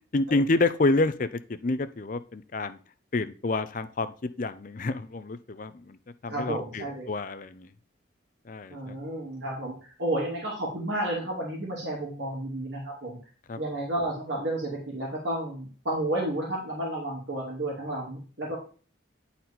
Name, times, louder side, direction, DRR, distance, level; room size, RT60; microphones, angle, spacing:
voice 1, 0.1-2.8 3.1-6.0 6.2-7.7 8.5-9.0 13.5-13.6, left 2 dB, 45° left, 12 dB, 0.5 m, -28 dB
voice 2, 6.3-7.0 8.7-13.2 13.6-18.6, right 1 dB, 70° right, -3 dB, 2.2 m, -31 dB
9.2 x 4.2 x 4.2 m, 0.40 s
head